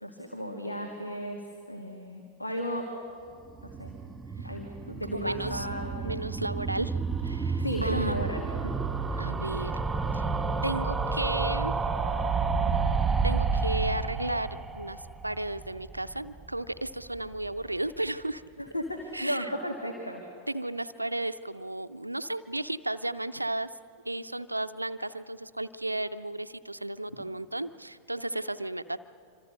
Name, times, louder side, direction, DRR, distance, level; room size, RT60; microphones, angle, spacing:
voice 1, 0.0-2.9 3.6-3.9 4.4-6.2 7.6-8.7 18.6-20.2, equal, 85° left, 2 dB, 2.1 m, -34 dB
sound 1, 3.5-16.6 16.8-16.9 17.1-17.2 17.4-17.5, right 4 dB, 10° right, 2.2 m, -30 dB
voice 2, 5.1-5.7 6.0-7.0 7.2-8.3 9.2-9.7 10.1-10.2 10.6-11.7 13.2-18.4 19.1-19.5 20.5-23.7 24.0-29.0, right 1 dB, 85° right, 11 dB, 0.6 m, -34 dB
26.5 x 25.5 x 6.6 m, 2.4 s
figure-of-eight pair, 90°, 0 cm